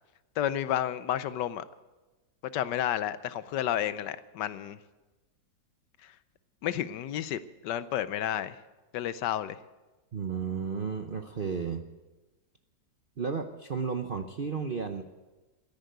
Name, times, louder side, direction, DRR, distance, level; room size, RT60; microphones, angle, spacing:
voice 1, 0.4-1.6 2.5-4.8 6.6-8.6 8.9-9.6, left 11 dB, 75° left, 14 dB, 1.2 m, -31 dB
voice 2, 10.1-11.9 13.2-15.0, right 5 dB, 50° right, 6 dB, 0.6 m, -33 dB
14.0 x 10.5 x 9.3 m, 1.2 s
omnidirectional pair, 2.0 m